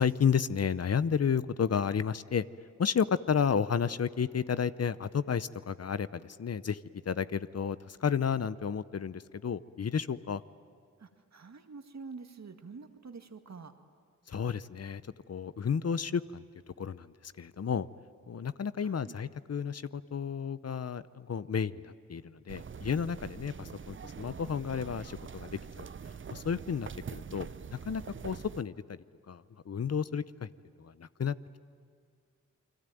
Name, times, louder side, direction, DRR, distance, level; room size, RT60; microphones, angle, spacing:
voice 1, 0.0-2.5 2.8-6.8 7.1-10.4 14.3-15.0 15.3-16.4 16.8-17.9 18.3-25.9 26.3-29.0 29.3-30.5 30.8-31.3, left 7 dB, 55° left, 15 dB, 0.8 m, -32 dB
voice 2, 11.0-13.7 18.8-19.2, right 4 dB, 60° right, 7 dB, 1.9 m, -47 dB
sound 1, 22.5-28.6, right 6 dB, 40° right, 0.6 m, -44 dB
28.5 x 22.0 x 9.2 m, 2.1 s
cardioid pair, 50°, 30 cm